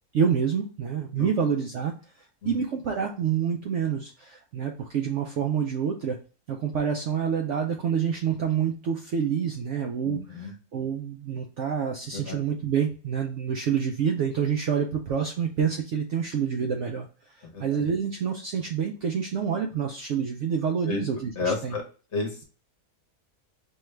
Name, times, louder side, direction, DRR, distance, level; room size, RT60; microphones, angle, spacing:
voice 1, 0.1-1.9 2.4-6.2 6.5-17.1 17.3-21.8, right 7 dB, 65° right, 2 dB, 0.7 m, -27 dB
voice 2, 10.0-10.5 12.1-12.4 17.4-17.6 20.8-21.0 21.4-21.8 22.1-22.4, left 3 dB, 50° left, 0 dB, 1.2 m, -31 dB
5.4 x 2.3 x 3.1 m, 0.37 s
omnidirectional pair, 1.7 m